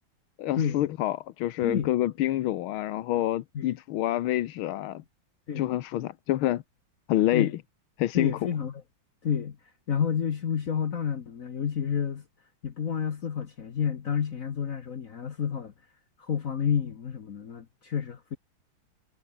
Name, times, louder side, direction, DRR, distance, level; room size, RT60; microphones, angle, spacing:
voice 1, 0.4-5.0 5.6-6.6 7.1-7.5 8.0-8.4, left 14 dB, 85° left, 1.7 m, -27 dB
voice 2, 8.1-8.8 9.2-9.6 9.9-12.2 12.6-15.7 16.2-18.4, left 7 dB, 45° left, 1.4 m, -30 dB
omnidirectional pair, 2.2 m